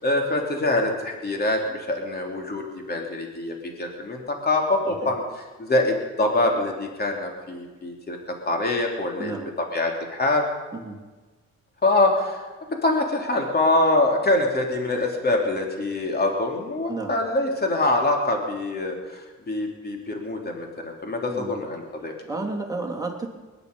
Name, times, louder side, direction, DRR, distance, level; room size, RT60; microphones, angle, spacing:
voice 1, 0.0-5.2 5.6-8.2 8.5-9.4 9.7-10.4 11.8-12.4 12.7-22.1, left 2 dB, 30° left, 1 dB, 3.2 m, -24 dB
voice 2, 9.2-9.5 10.7-11.0 16.9-17.2 21.3-21.5 22.2-23.3, right 3 dB, 10° right, 1 dB, 2.9 m, -32 dB
21.0 x 11.0 x 5.4 m, 1.3 s
cardioid pair, 90°, 30 cm